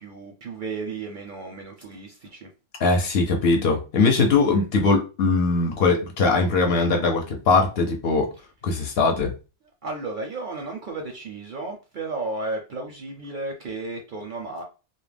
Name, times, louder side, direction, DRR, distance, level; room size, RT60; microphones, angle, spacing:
voice 1, 0.0-2.5 4.5-4.7 9.8-14.6, right 3 dB, 60° right, 0.5 m, -33 dB
voice 2, 2.8-8.3 8.6-9.3, left 3 dB, 65° left, 0.8 m, -21 dB
2.3 x 2.1 x 3.2 m
omnidirectional pair, 1.2 m